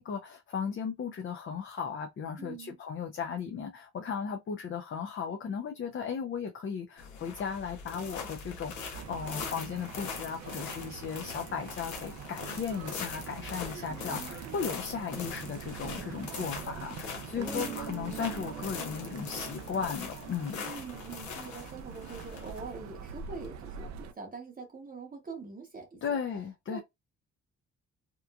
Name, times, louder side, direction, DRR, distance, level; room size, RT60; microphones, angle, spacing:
voice 1, 0.0-20.6 26.0-26.8, left 6 dB, 40° left, 0.5 m, -36 dB
voice 2, 2.4-2.8 13.9-14.3 17.4-17.9 20.6-26.2 26.7-26.8, right 4 dB, 30° right, 0.8 m, -44 dB
sound 1, 7.0-23.9, left 5 dB, 75° left, 0.8 m, -42 dB
sound 2, 8.9-24.1, right 7 dB, 65° right, 0.5 m, -44 dB
Guitar, 17.4-21.9, right 5 dB, ahead, 1.0 m, -45 dB
3.0 x 2.3 x 2.2 m
cardioid pair, 90°, 30 cm